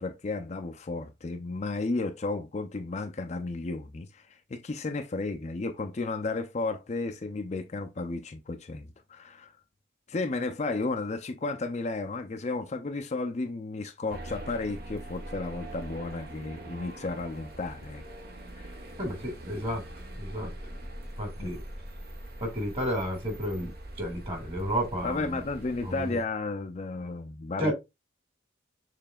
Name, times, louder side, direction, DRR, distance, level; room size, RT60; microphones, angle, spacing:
voice 1, 0.0-9.5 10.1-18.0 18.6-18.7 21.4-21.5 25.0-27.7, left 3 dB, 35° left, 0.4 m, -33 dB
sound 1, 14.1-26.2, right 1 dB, 50° right, 1.0 m, -43 dB
voice 2, 19.0-19.8 20.2-20.5 21.2-21.6 22.4-25.2 25.8-26.2 27.6-27.7, equal, 30° right, 2.0 m, -32 dB
6.7 x 3.2 x 2.3 m
head